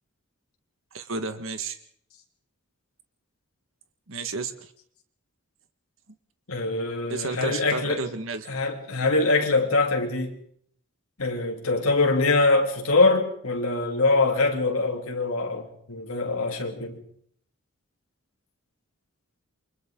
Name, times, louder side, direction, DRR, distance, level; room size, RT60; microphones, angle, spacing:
voice 1, 0.9-1.8 4.1-4.5 7.1-8.5, right 3 dB, 70° right, 1.7 m, -31 dB
voice 2, 6.5-8.0 8.5-10.4 11.2-17.0, left 3 dB, 90° left, 3.1 m, -23 dB
29.0 x 24.0 x 3.9 m
head